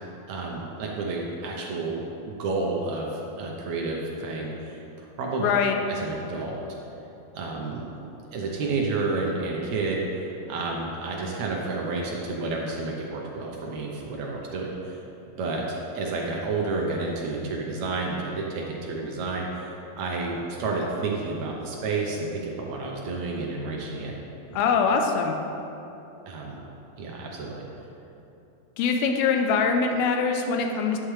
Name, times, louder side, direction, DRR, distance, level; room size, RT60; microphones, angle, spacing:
voice 1, 0.3-5.5 5.9-6.6 7.3-7.8 8.3-15.0 15.4-24.2 24.5-24.6 26.3-26.6 27.0-27.6, right 3 dB, 75° right, -1 dB, 1.7 m, -30 dB
voice 2, 5.4-5.8 24.5-25.4 28.8-31.0, left 5 dB, 90° left, 4 dB, 2.5 m, -23 dB
11.5 x 9.3 x 3.3 m, 2.9 s
omnidirectional pair, 4.3 m